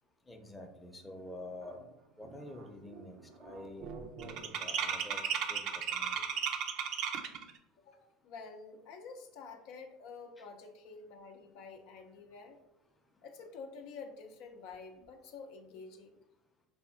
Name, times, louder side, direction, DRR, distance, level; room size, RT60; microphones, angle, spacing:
voice 1, 0.3-1.8 2.2-3.9 4.2-6.2 10.4-10.5, left 1 dB, 15° left, 3 dB, 0.6 m, -48 dB
sound 1, 1.8-1.9 2.2-2.6 2.9-7.5, right 7 dB, 60° right, 0.5 m, -36 dB
voice 2, 7.8-12.6 13.2-16.2, left 4 dB, 65° left, 4 dB, 0.5 m, -49 dB
3.4 x 2.2 x 4.3 m, 0.90 s
hypercardioid pair, 90°, 0 cm